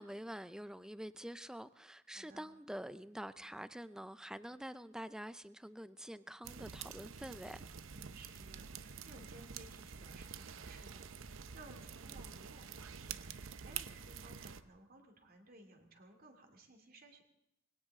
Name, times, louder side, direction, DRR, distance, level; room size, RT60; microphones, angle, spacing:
voice 1, 0.0-7.6, equal, 5° right, 0.5 m, -47 dB
voice 2, 2.1-2.5 7.9-17.2, right 2 dB, 50° right, 2.6 m, -59 dB
sound 1, 6.4-14.6, right 7 dB, 90° right, 0.7 m, -48 dB
21.0 x 17.5 x 3.7 m
head